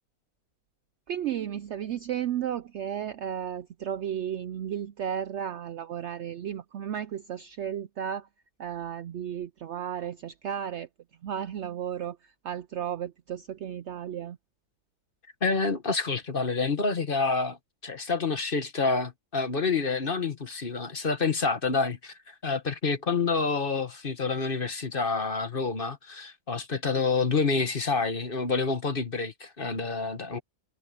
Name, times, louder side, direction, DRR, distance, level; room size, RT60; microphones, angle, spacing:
voice 1, 1.1-8.3 8.6-10.9 11.2-14.4, right 9 dB, 65° right, 0.7 m, -34 dB
voice 2, 15.4-17.6 17.8-30.4, left 4 dB, 40° left, 1.5 m, -28 dB
omnidirectional pair, 1.6 m